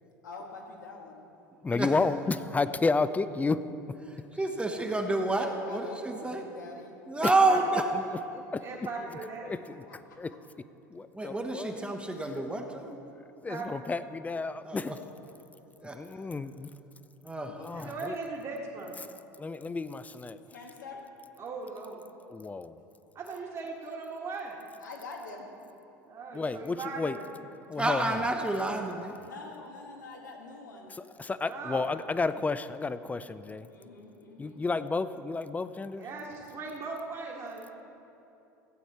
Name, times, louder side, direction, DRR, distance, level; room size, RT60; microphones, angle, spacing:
voice 1, 0.2-1.2 4.9-7.0 9.5-9.6 9.9-10.4 20.5-21.0 24.8-25.5 29.2-31.0 33.7-34.6, left 3 dB, 85° left, 1 dB, 1.6 m, -45 dB
voice 2, 1.6-3.6 7.2-7.3 7.9-8.2 9.4-9.8 10.2-10.3 10.9-11.8 13.4-15.0 15.9-16.7 17.6-18.2 19.4-20.4 22.3-22.8 26.3-27.2 27.7-28.2 31.2-33.7 34.4-36.1, left 3 dB, 15° left, 14 dB, 0.4 m, -31 dB
voice 3, 4.4-6.4 7.1-7.8 11.1-13.0 14.6-14.9 15.8-16.0 17.2-17.9 27.8-29.1, right 2 dB, 10° right, 3 dB, 1.0 m, -29 dB
voice 4, 8.6-9.5 13.5-13.7 17.7-18.9 21.4-22.0 23.2-24.5 26.1-27.3 31.4-31.8 35.9-37.6, right 4 dB, 40° right, -5 dB, 1.7 m, -39 dB
15.0 x 8.5 x 4.3 m, 2.9 s
hypercardioid pair, 75°, 10 cm